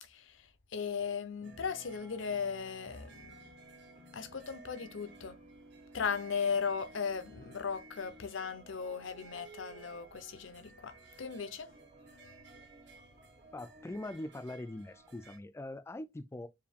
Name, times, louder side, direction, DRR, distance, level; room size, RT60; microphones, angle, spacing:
voice 1, 0.0-0.5 0.7-3.3 4.1-5.4 5.9-11.7, left 6 dB, 90° left, 0.7 m, -37 dB
sound 1, 1.4-15.1, right 1 dB, 40° right, 0.9 m, -57 dB
sound 2, 1.4-15.4, right 5 dB, 65° right, 1.1 m, -59 dB
voice 2, 13.5-16.5, left 1 dB, 15° left, 0.3 m, -42 dB
4.7 x 2.7 x 3.4 m
head